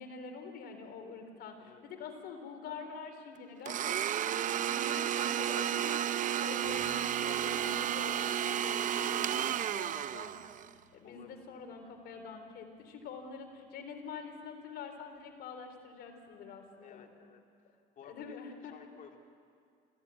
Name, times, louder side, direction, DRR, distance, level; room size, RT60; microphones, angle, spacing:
voice 1, 0.0-10.4 10.9-17.1 18.0-18.7, left 5 dB, 70° left, 5 dB, 3.7 m, -46 dB
Domestic sounds home sounds, 3.7-10.7, right 10 dB, 50° right, 0.6 m, -32 dB
sound 1, 6.6-16.4, right 4 dB, 65° right, 7.8 m, -63 dB
voice 2, 11.0-11.6 16.8-17.4 18.0-18.4 18.7-19.2, left 7 dB, 55° left, 2 dB, 2.4 m, -54 dB
28.0 x 14.5 x 9.3 m, 2.3 s
cardioid pair, 110°, 17 cm